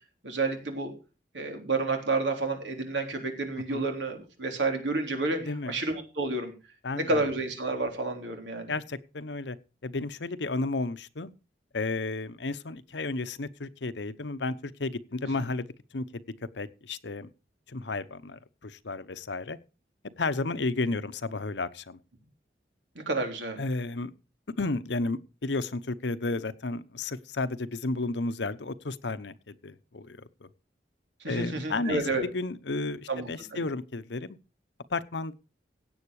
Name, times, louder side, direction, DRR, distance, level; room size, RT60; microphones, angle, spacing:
voice 1, 0.2-0.9 1.3-5.4 5.7-6.5 6.9-8.7 23.0-23.6 31.2-32.2 33.1-33.7, right 3 dB, 90° right, 3.6 m, -30 dB
voice 2, 6.8-7.3 8.7-9.6 9.8-11.3 11.7-15.7 15.9-16.2 16.5-17.3 17.7-19.6 20.2-22.0 23.6-24.1 24.6-30.5 31.2-34.4 34.9-35.3, left 3 dB, 80° left, 0.9 m, -32 dB
17.0 x 8.0 x 4.8 m
head